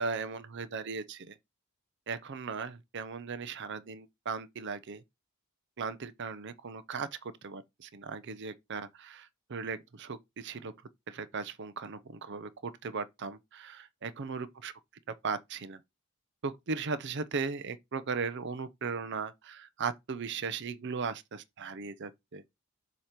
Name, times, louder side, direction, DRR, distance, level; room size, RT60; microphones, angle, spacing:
voice 1, 0.0-1.3 2.1-5.0 5.8-10.7 11.1-14.7 15.1-15.8 16.4-22.4, right 5 dB, 55° right, 0.6 m, -37 dB
7.4 x 2.9 x 5.0 m
head